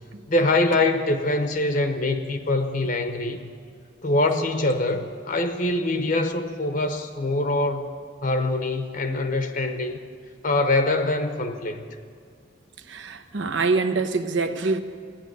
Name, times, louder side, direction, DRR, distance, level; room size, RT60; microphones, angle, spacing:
voice 1, 0.3-3.5 4.0-7.9 8.2-10.0 10.4-11.8, left 2 dB, 45° left, 0.8 m, -24 dB
voice 2, 12.8-14.8, right 3 dB, 75° right, 0.9 m, -25 dB
14.5 x 10.5 x 9.2 m
head